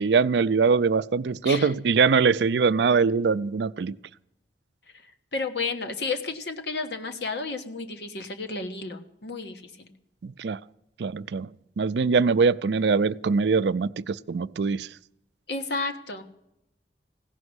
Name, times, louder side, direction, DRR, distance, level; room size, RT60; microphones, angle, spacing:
voice 1, 0.0-4.0 10.2-10.6 11.0-11.5 11.8-14.9, right 5 dB, 75° right, 0.4 m, -22 dB
voice 2, 1.4-1.7 5.3-9.9 15.5-16.2, left 3 dB, 70° left, 1.3 m, -32 dB
16.5 x 6.2 x 9.6 m
head